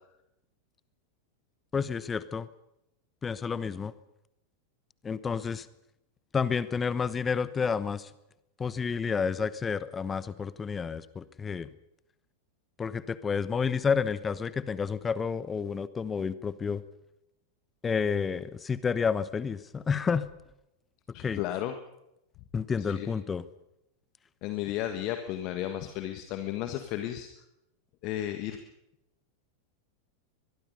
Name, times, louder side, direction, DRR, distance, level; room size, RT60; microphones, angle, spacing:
voice 1, 1.7-2.5 3.2-3.9 5.0-5.7 6.3-8.1 8.6-11.7 12.8-16.8 17.8-20.3 21.2-21.4 22.5-23.4, left 6 dB, 20° left, 17 dB, 1.0 m, -30 dB
voice 2, 21.1-21.7 22.8-23.1 24.4-27.3 28.0-28.6, left 12 dB, 40° left, 8 dB, 1.6 m, -33 dB
23.0 x 22.0 x 5.5 m, 0.86 s
figure-of-eight pair, 90°, 0 cm